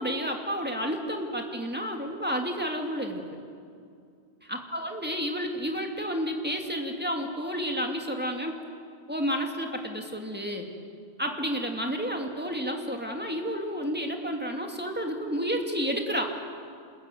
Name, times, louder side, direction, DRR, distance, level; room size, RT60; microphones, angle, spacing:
voice 1, 0.0-3.2 4.5-8.6 9.1-10.7 11.2-16.3, equal, 10° right, 2 dB, 2.6 m, -31 dB
28.0 x 21.0 x 9.4 m, 2.3 s
omnidirectional pair, 1.1 m